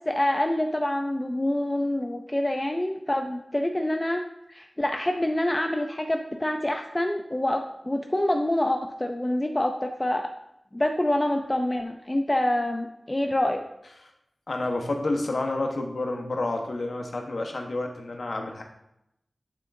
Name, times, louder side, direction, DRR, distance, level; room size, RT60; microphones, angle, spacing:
voice 1, 0.1-4.2 4.5-10.3 10.7-13.6, left 1 dB, 25° left, 4 dB, 0.5 m, -26 dB
voice 2, 14.5-18.6, left 2 dB, 75° left, 2 dB, 1.1 m, -29 dB
9.0 x 7.4 x 2.7 m, 0.81 s
wide cardioid pair, 80°, 0 cm